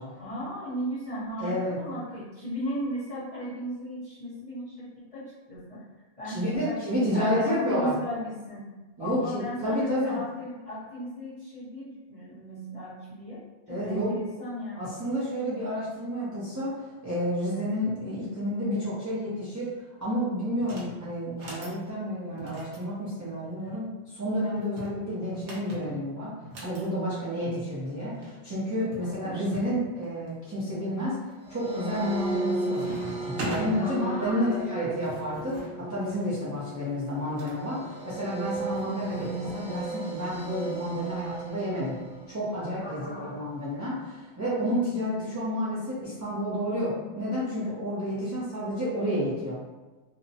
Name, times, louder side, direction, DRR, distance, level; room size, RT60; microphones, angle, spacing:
voice 1, 0.0-5.8 6.2-8.6 9.0-13.4 13.7-14.9 28.9-29.5 33.8-34.9 42.8-43.4, equal, 35° left, -11 dB, 1.1 m, -36 dB
voice 2, 1.4-1.8 6.2-7.9 9.0-10.2 13.7-14.1 14.8-19.7 20.0-26.3 26.6-31.2 31.5-32.9 33.2-41.9 42.3-49.6, equal, 20° right, -10 dB, 0.6 m, -30 dB
sound 1, 20.6-20.9 21.3-21.8 22.4-23.8 24.6-26.8 27.9-28.0 28.2-28.3 28.9-29.7 30.3-30.8 31.3-31.7 32.0-32.4 32.7-33.7 34.6-37.6 38.5-39.6, right 1 dB, 85° right, 1.0 m, -42 dB
sound 2, 31.4-42.8, right 2 dB, 55° right, 0.8 m, -36 dB
2.7 x 2.1 x 2.7 m, 1.2 s
omnidirectional pair, 1.1 m